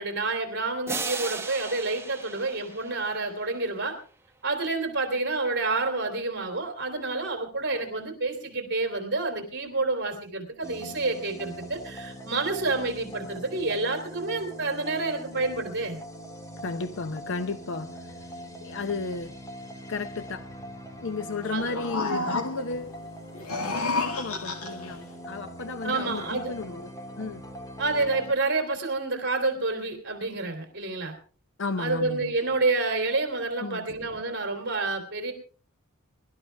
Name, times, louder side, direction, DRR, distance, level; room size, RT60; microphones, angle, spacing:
voice 1, 0.0-3.9 4.4-16.0 21.5-21.8 25.8-26.5 27.8-31.1 31.8-35.3, right 3 dB, 50° right, 3.0 m, -29 dB
sound 1, 0.9-3.7, right 4 dB, 10° right, 1.0 m, -36 dB
sound 2, 10.6-28.3, equal, 15° left, 1.8 m, -42 dB
voice 2, 16.6-19.4 19.9-20.5 21.0-23.0 24.0-26.9 27.2-27.4 31.6-32.3 33.6-33.8, left 3 dB, 55° left, 0.7 m, -33 dB
sound 3, 21.5-22.8 23.3-25.0, left 3 dB, 80° left, 2.1 m, -30 dB
22.5 x 12.5 x 3.4 m
head